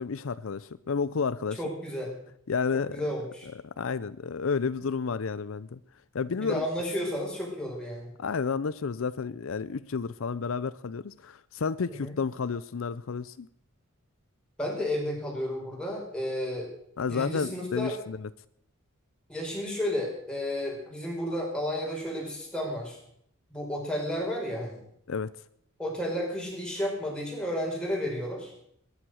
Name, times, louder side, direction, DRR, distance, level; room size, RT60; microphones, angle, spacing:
voice 1, 0.0-1.6 2.5-3.0 3.8-5.8 6.1-6.6 8.2-13.5 17.0-18.3 25.1-25.3, left 5 dB, 70° left, 16 dB, 0.5 m, -31 dB
voice 2, 1.6-2.2 2.7-3.5 6.3-8.1 11.9-12.1 14.6-16.7 17.1-17.9 19.3-23.0 23.5-24.8 25.8-28.5, left 1 dB, 5° left, -3 dB, 5.2 m, -32 dB
21.0 x 10.5 x 6.3 m, 0.71 s
head